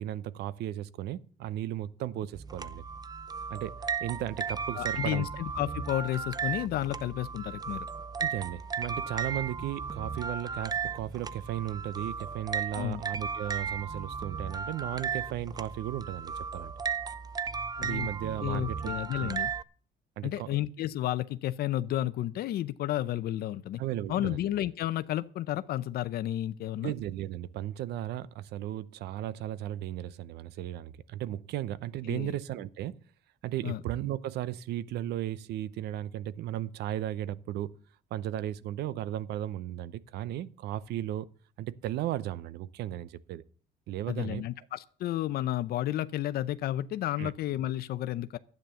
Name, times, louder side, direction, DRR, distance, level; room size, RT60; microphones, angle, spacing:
voice 1, 0.0-2.8 3.5-5.3 8.2-16.7 17.8-18.8 19.2-19.4 20.2-20.6 23.8-24.4 26.8-33.0 33.4-37.8 38.1-41.3 41.6-43.4 43.9-44.4 47.2-47.3, right 12 dB, 75° right, 0.8 m, -35 dB
sound 1, 2.3-19.6, right 6 dB, 25° right, 0.6 m, -35 dB
voice 2, 4.7-7.9 12.7-13.0 17.8-18.1 18.4-19.5 20.2-23.8 24.1-26.9 32.1-32.3 33.6-33.8 44.1-48.4, left 13 dB, 65° left, 0.7 m, -32 dB
12.0 x 9.3 x 6.9 m
cardioid pair, 110°, 17 cm